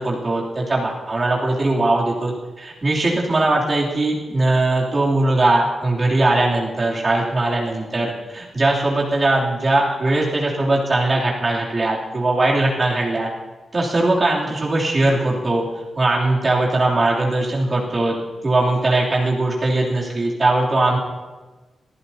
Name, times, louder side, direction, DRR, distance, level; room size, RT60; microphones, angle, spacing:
voice 1, 0.0-13.3 13.7-15.6 15.9-18.1 18.4-21.0, right 2 dB, 30° right, -5 dB, 3.0 m, -20 dB
27.0 x 15.0 x 2.8 m, 1.3 s
wide cardioid pair, 165°, 0 cm